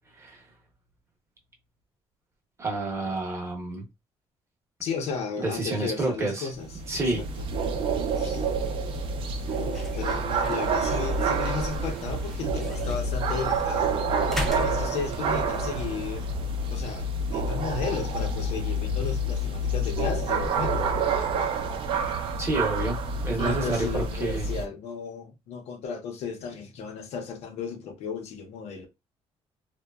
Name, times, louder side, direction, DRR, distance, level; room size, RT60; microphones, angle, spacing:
voice 1, 2.6-3.8 5.4-6.5 6.9-7.2 22.4-24.6, right 2 dB, 25° right, 0.8 m, -29 dB
voice 2, 4.8-6.8 7.1-7.5 8.2-8.4 9.6-13.9 14.5-16.3 16.7-20.9 23.4-28.9, left 5 dB, 80° left, 0.7 m, -34 dB
sound 1, 6.5-24.7, right 2 dB, 55° right, 0.4 m, -28 dB
sound 2, 8.8-20.2, left 1 dB, 5° left, 0.5 m, -43 dB
2.8 x 2.2 x 2.2 m
cardioid pair, 140°, 11 cm